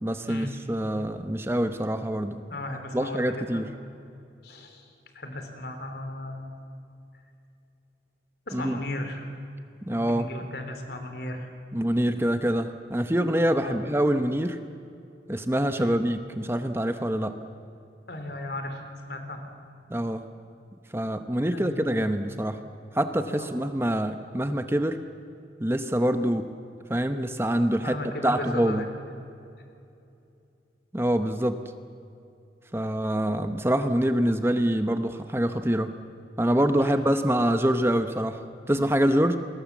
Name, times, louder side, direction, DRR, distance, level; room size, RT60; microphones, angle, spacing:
voice 1, 0.0-2.4 2.9-3.7 8.5-8.8 9.8-10.3 11.7-14.6 15.3-17.4 19.9-20.3 20.9-22.6 22.9-25.0 25.6-26.5 26.9-28.0 28.2-28.8 30.9-31.6 32.7-35.9 36.4-38.4 38.7-39.4, right 1 dB, 15° right, 8 dB, 0.8 m, -25 dB
voice 2, 2.5-3.7 4.4-4.9 5.1-6.5 8.5-9.3 9.9-11.5 13.6-13.9 15.7-16.0 18.1-19.4 21.5-22.0 23.4-23.5 27.8-28.9 36.8-37.1, left 1 dB, 65° left, 6 dB, 3.5 m, -36 dB
29.0 x 22.0 x 7.4 m, 2.6 s
head